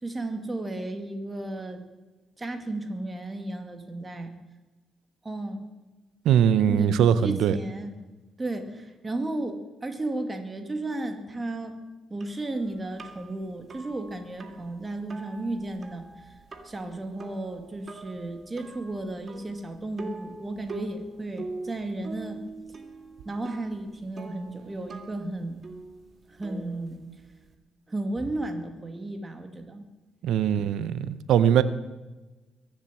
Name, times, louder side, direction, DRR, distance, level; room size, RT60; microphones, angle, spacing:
voice 1, 0.0-1.8 2.4-4.4 5.2-5.7 6.7-7.9 8.4-11.8 12.1-16.4 16.6-22.4 23.2-25.6 26.3-27.0 27.9-29.9, right 2 dB, 20° right, 5 dB, 2.2 m, -34 dB
voice 2, 6.2-7.6 30.2-31.6, right 9 dB, 85° right, 14 dB, 0.8 m, -21 dB
sound 1, 12.2-27.5, right 3 dB, 40° right, 1.9 m, -44 dB
22.0 x 7.5 x 7.5 m, 1.2 s
cardioid pair, 105°, 0 cm